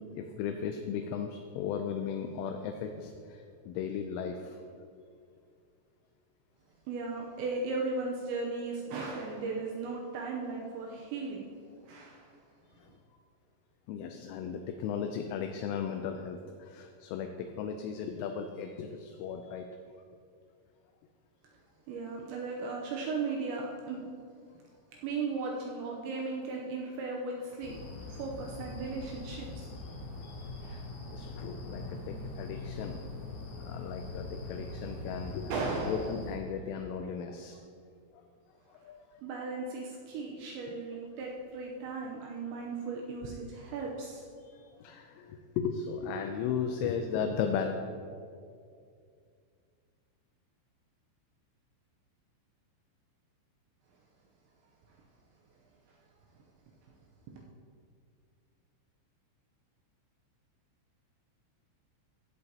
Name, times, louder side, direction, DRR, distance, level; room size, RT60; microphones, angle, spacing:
voice 1, 0.0-4.6 12.8-12.9 13.9-19.7 29.9-30.8 31.1-33.0 33.7-35.5 35.9-37.6 38.8-39.0 44.4-47.7, left 7 dB, 85° left, 5 dB, 2.9 m, -36 dB
voice 2, 6.9-11.5 11.8-12.4 21.9-24.0 24.9-27.8 28.1-29.7 30.6-30.8 35.5-36.1 39.2-44.2, right 3 dB, 85° right, -1 dB, 2.7 m, -36 dB
sound 1, 27.6-36.4, left 2 dB, 65° left, 2.8 m, -42 dB
15.5 x 8.1 x 2.8 m, 2.3 s
omnidirectional pair, 5.9 m